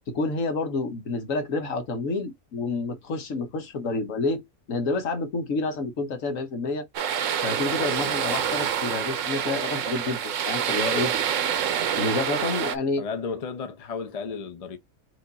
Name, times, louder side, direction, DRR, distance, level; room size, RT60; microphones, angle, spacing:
voice 1, 0.1-4.4 4.7-6.9 7.4-11.1 12.0-13.0, left 3 dB, 65° left, 1.5 m, -29 dB
sound 1, 6.9-12.8, right 8 dB, 65° right, 1.0 m, -27 dB
voice 2, 13.0-14.8, left 5 dB, 40° left, 0.5 m, -33 dB
5.0 x 2.6 x 4.0 m
omnidirectional pair, 1.5 m